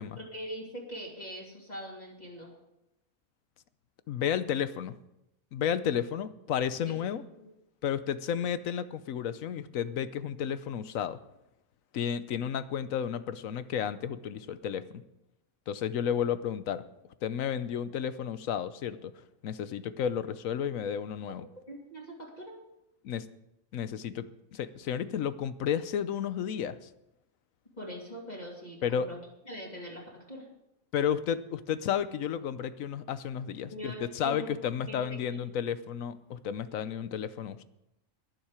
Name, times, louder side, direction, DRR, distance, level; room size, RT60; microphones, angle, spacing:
voice 1, 0.2-2.5 6.8-6.9 7.4-7.5 21.7-22.5 27.7-29.2 29.5-30.5 33.7-34.5 34.9-35.4, equal, 30° left, -4 dB, 2.9 m, -42 dB
voice 2, 4.1-5.0 5.5-7.2 7.8-11.2 11.9-15.0 15.7-16.8 17.2-19.1 19.4-21.5 23.0-23.3 23.7-26.9 28.8-29.1 30.9-37.6, left 8 dB, 70° left, 14 dB, 1.1 m, -32 dB
21.0 x 7.3 x 4.9 m, 0.88 s
omnidirectional pair, 1.5 m